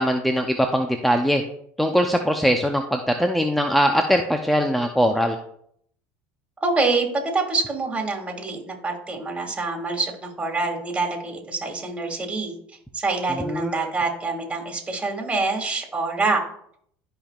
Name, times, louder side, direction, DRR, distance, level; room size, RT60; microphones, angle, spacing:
voice 1, 0.0-1.4 1.8-5.4 13.5-13.7, equal, ahead, 4 dB, 0.7 m, -21 dB
voice 2, 6.6-7.1 7.3-12.5 12.9-16.4, right 3 dB, 20° right, 2 dB, 2.3 m, -26 dB
13.0 x 5.3 x 2.5 m, 0.66 s
supercardioid pair, 95°, 6 cm